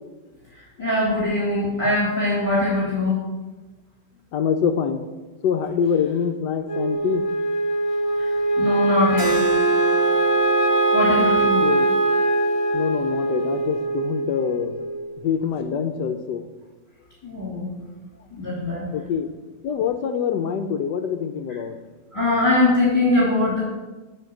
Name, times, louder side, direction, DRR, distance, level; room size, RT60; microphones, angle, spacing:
voice 1, 0.8-3.2 8.2-8.3 8.6-9.4 10.9-11.6 17.2-17.7 18.4-18.9 22.1-23.6, left 2 dB, 15° left, -7 dB, 2.6 m, -21 dB
voice 2, 4.3-5.0 5.4-7.2 11.4-11.9 12.7-14.7 15.2-16.5 18.9-19.3 19.6-21.8, left 7 dB, 70° left, 8 dB, 1.1 m, -25 dB
Wind instrument woodwind instrument, 6.7-15.1, right 3 dB, 55° left, 1.4 m, -22 dB
Keyboard (musical), 9.2-14.4, left 1 dB, 55° right, 1.7 m, -28 dB
7.2 x 5.9 x 7.6 m, 1.2 s
omnidirectional pair, 2.1 m